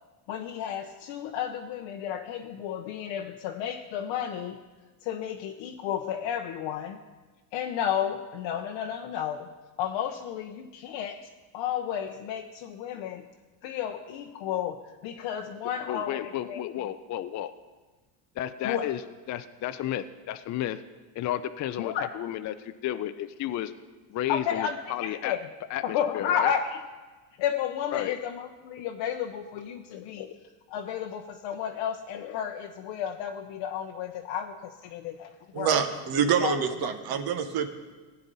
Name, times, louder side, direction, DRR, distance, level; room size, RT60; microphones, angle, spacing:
voice 1, 0.3-4.6 5.0-7.0 7.5-9.5 9.8-13.2 13.6-16.9 18.6-18.9 21.8-22.1 24.3-25.4 25.8-26.8 27.4-30.4 30.7-35.8 36.4-36.6 37.1-37.2, left 9 dB, 65° left, 3 dB, 0.9 m, -32 dB
voice 2, 15.9-17.5 18.4-19.0 19.3-20.8 21.2-23.7 24.1-25.4 25.7-26.5 27.9-28.1, left 12 dB, 35° left, 10 dB, 0.5 m, -32 dB
voice 3, 35.5-37.7, right 7 dB, 50° right, 8 dB, 1.1 m, -26 dB
15.5 x 8.9 x 4.0 m, 1.3 s
supercardioid pair, 95°, 48 cm